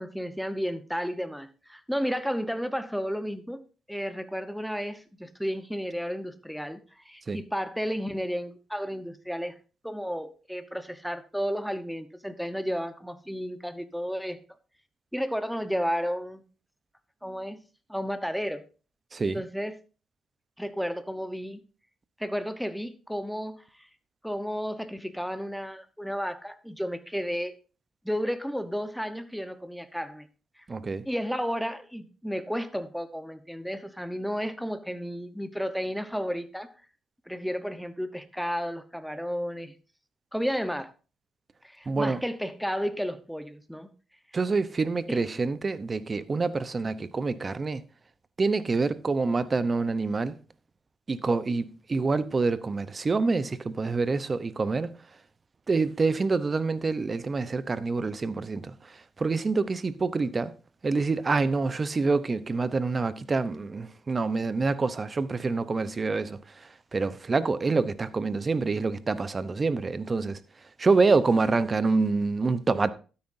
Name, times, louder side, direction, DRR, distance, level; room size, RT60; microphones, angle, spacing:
voice 1, 0.0-3.6 3.9-9.5 9.8-14.4 15.1-16.4 17.2-17.6 17.9-18.6 19.3-19.7 20.6-21.6 22.2-23.6 24.2-27.5 28.0-30.3 31.1-36.7 37.3-39.7 40.3-40.9 41.6-43.9 45.1-45.2, equal, ahead, 1.0 m, -32 dB
voice 2, 30.7-31.0 41.9-42.2 44.3-47.8 48.4-50.3 51.1-54.9 55.7-60.5 60.8-70.4 70.8-72.9, right 4 dB, 30° right, 0.8 m, -26 dB
12.5 x 9.7 x 2.7 m
cardioid pair, 90°, 0 cm